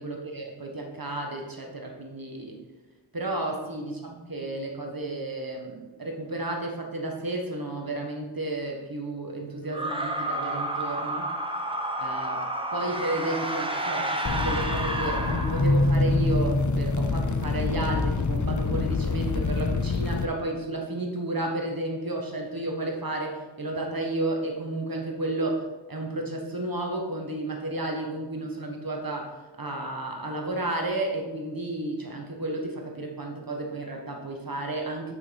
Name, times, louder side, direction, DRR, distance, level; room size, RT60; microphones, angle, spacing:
voice 1, 0.0-2.6 3.1-11.3 12.0-12.4 12.7-29.3 29.6-35.1, right 2 dB, 50° right, 1 dB, 1.5 m, -32 dB
sound 1, 9.7-16.1, right 1 dB, 10° right, 0.9 m, -30 dB
sound 2, 14.2-20.2, left 5 dB, 40° left, 0.6 m, -28 dB
Keyboard (musical), 15.6-18.5, equal, 70° left, 0.9 m, -26 dB
6.2 x 5.7 x 4.8 m, 1.2 s
wide cardioid pair, 50°, 46 cm